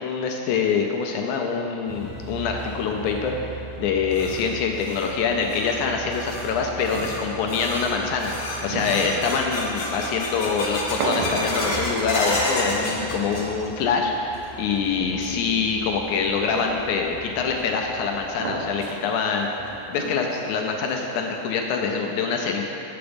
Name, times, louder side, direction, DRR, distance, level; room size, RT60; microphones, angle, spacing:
voice 1, 0.0-19.5 19.9-22.7, left 5 dB, 80° left, 2 dB, 1.8 m, -25 dB
sound 1, 1.9-18.8, right 5 dB, 5° right, 0.7 m, -42 dB
sound 2, 3.7-13.9 14.1-14.7 15.1-15.2 16.0-16.1 17.7-17.8 18.2-18.3 18.8-18.9 19.4-19.5 20.0-20.4, left 1 dB, 55° left, 0.9 m, -31 dB
sound 3, 6.9-21.9, right 3 dB, 80° right, 2.5 m, -36 dB
8.0 x 7.0 x 5.1 m, 3.0 s
omnidirectional pair, 4.0 m